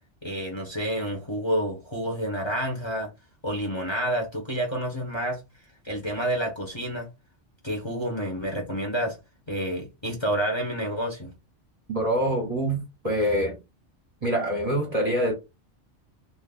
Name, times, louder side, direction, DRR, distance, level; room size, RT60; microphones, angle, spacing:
voice 1, 0.2-3.1 3.4-5.4 5.8-7.1 7.6-9.2 9.5-11.3, equal, 25° left, 0.9 m, -29 dB
voice 2, 11.9-13.6 14.2-15.3, equal, 35° right, 1.0 m, -25 dB
2.5 x 2.4 x 3.7 m
omnidirectional pair, 1.2 m